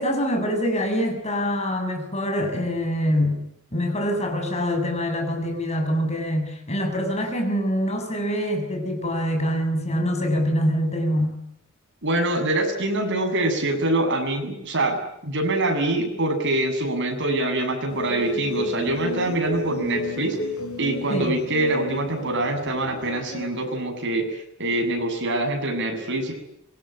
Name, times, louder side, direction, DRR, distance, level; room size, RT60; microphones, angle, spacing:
voice 1, 0.0-3.4 3.7-11.4 21.1-21.4, equal, 30° left, 5 dB, 7.2 m, -24 dB
voice 2, 12.0-20.4 20.8-26.3, right 2 dB, 55° right, 5 dB, 7.7 m, -24 dB
sound 1, 17.9-23.5, left 2 dB, 80° left, 4.5 m, -32 dB
26.0 x 23.5 x 9.4 m, 0.79 s
head